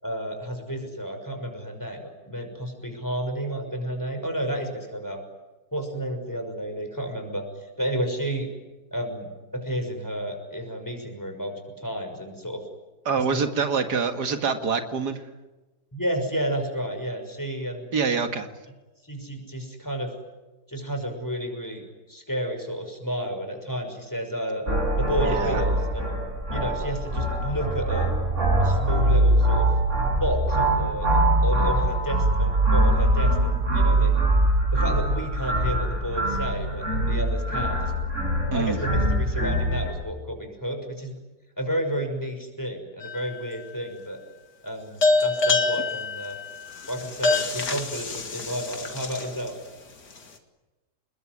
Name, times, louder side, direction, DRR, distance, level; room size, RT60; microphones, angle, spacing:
voice 1, 0.0-5.2 5.7-7.4 7.8-8.5 8.9-12.6 13.2-13.4 15.9-17.9 19.0-20.1 20.7-24.6 25.0-26.2 26.5-28.1 28.6-29.7 30.2-31.1 31.4-34.2 34.7-37.9 38.5-41.2 41.6-44.2 44.6-46.4 46.9-49.5, equal, 10° left, 4 dB, 6.1 m, -31 dB
voice 2, 13.1-15.2 17.9-18.5 25.2-25.6 38.5-38.8, right 5 dB, 85° right, 7 dB, 2.4 m, -25 dB
sound 1, 24.7-39.9, right 1 dB, 45° right, 7.2 m, -23 dB
sound 2, 43.0-43.6 45.0-49.5, left 3 dB, 85° left, 3.1 m, -25 dB
28.5 x 21.0 x 9.7 m, 1.1 s
omnidirectional pair, 1.7 m